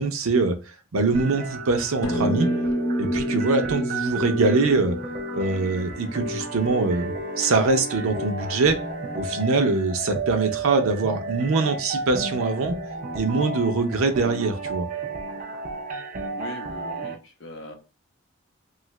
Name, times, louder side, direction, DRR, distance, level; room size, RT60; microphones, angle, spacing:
voice 1, 0.0-2.5 3.0-5.0 5.3-8.8 9.2-12.7 13.1-14.9, right 3 dB, 90° right, 6 dB, 0.6 m, -23 dB
sound 1, 1.1-17.1, right 2 dB, 40° right, 0.5 m, -33 dB
sound 2, 2.0-6.7, equal, 20° left, 0.4 m, -28 dB
Bowed string instrument, 5.4-10.6, right 1 dB, 40° left, 1.0 m, -42 dB
voice 2, 16.4-17.7, left 2 dB, 60° left, 2 dB, 0.7 m, -40 dB
2.8 x 2.4 x 3.1 m, 0.32 s
head